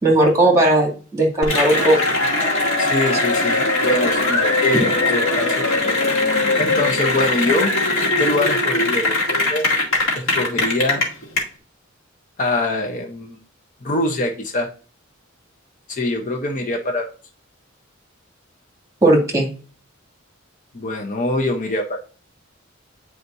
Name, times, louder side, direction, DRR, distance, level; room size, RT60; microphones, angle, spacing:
voice 1, 0.0-2.0 3.1-3.2 4.7-4.8 19.0-19.5, right 1 dB, 15° right, 0 dB, 2.5 m, -16 dB
Cheering / Applause, 1.4-11.4, left 2 dB, 75° left, 2.1 m, -20 dB
voice 2, 2.8-6.0 6.6-7.7 8.2-9.7 10.1-11.0 12.4-13.4 13.8-14.7 15.9-17.1 20.7-22.0, left 2 dB, 40° left, 2 dB, 0.8 m, -24 dB
9.5 x 5.0 x 2.7 m, 0.38 s
head